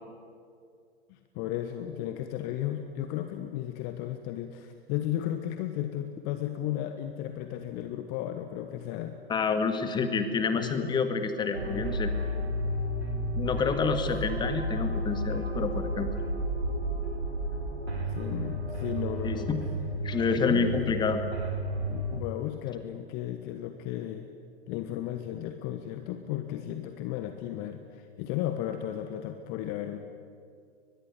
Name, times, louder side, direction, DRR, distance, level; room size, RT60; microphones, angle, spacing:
voice 1, 1.1-9.2 10.5-10.9 18.1-19.5 20.3-21.2 21.9-24.3 24.7-30.0, left 12 dB, 30° left, 8 dB, 1.3 m, -34 dB
voice 2, 9.3-12.1 13.3-16.1 19.2-19.6 20.0-21.2, left 5 dB, 15° left, 8 dB, 1.9 m, -28 dB
sound 1, 11.5-22.2, right 1 dB, 85° right, 3.1 m, -32 dB
22.5 x 21.0 x 9.8 m, 2.3 s
figure-of-eight pair, 110°, 32 cm